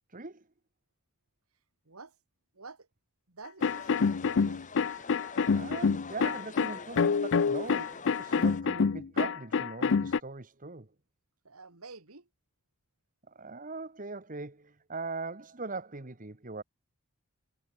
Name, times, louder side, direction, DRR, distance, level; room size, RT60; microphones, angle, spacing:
voice 1, 0.1-0.4 5.5-10.9 13.3-16.6, right 3 dB, 35° right, 1.4 m, -41 dB
voice 2, 1.9-2.2 2.5-2.9 3.3-4.6 11.4-12.3, right 3 dB, 75° right, 2.2 m, -49 dB
sound 1, 3.6-10.2, left 5 dB, 55° left, 0.5 m, -27 dB
sound 2, 3.6-8.6, left 4 dB, 35° left, 1.5 m, -47 dB
head